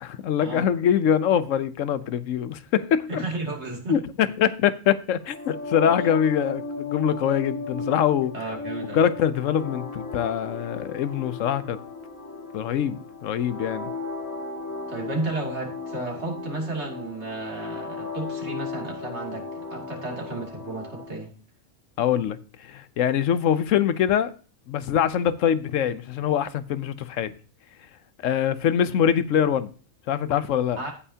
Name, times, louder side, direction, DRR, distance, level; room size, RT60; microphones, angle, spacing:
voice 1, 0.0-3.2 3.9-8.3 8.9-11.8 12.5-13.9 22.0-24.3 24.7-27.3 28.2-29.7 30.1-30.8, left 9 dB, 80° left, 1.0 m, -24 dB
voice 2, 3.1-4.0 6.0-6.1 8.3-9.1 14.9-21.3 30.8-30.9, right 2 dB, 60° right, 2.9 m, -33 dB
sound 1, 5.2-21.2, left 3 dB, 15° left, 2.2 m, -36 dB
16.5 x 5.6 x 2.8 m
omnidirectional pair, 1.3 m